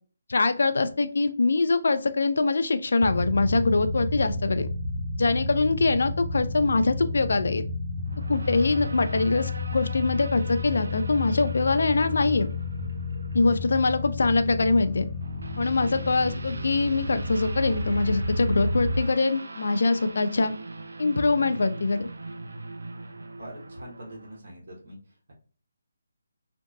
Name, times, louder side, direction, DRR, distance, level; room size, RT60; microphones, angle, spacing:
voice 1, 0.3-4.7 5.2-7.6 8.3-12.5 13.3-15.1 15.6-20.5 21.0-22.1, left 3 dB, 70° left, 10 dB, 0.4 m, -23 dB
sound 1, 3.0-19.0, left 2 dB, 10° left, 0.5 m, -31 dB
sound 2, 8.0-24.4, right 2 dB, 80° right, 0.5 m, -42 dB
voice 2, 23.4-25.0, right 1 dB, 60° right, -2 dB, 1.3 m, -43 dB
2.9 x 2.5 x 2.4 m, 0.39 s
hypercardioid pair, 165°, 0 cm